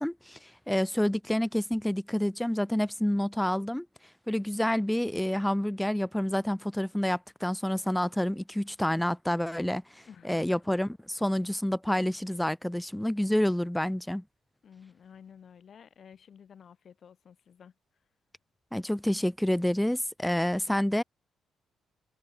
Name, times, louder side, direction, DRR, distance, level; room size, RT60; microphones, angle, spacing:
voice 1, 0.0-3.9 4.3-14.2 18.7-21.0, left 1 dB, 5° left, 1.4 m, -28 dB
voice 2, 10.1-10.5 14.6-17.7, left 7 dB, 55° left, 6.5 m, -52 dB
cardioid pair, 90°, 0 cm